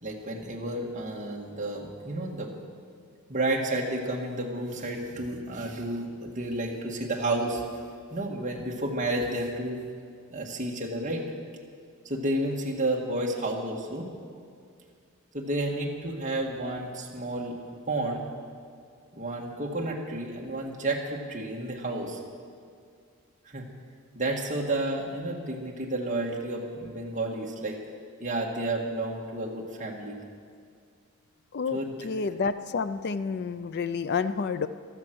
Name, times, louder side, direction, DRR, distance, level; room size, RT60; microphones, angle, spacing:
voice 1, 0.0-2.5 3.3-7.6 8.1-9.8 10.3-11.2 12.1-14.1 15.3-17.6 17.9-18.3 19.2-22.2 23.5-23.7 24.1-27.8 28.2-30.2 31.7-32.0, right 1 dB, 35° right, -1 dB, 1.9 m, -31 dB
voice 2, 32.0-34.7, left 5 dB, 50° left, 12 dB, 0.4 m, -29 dB
14.5 x 13.0 x 6.2 m, 2.3 s
head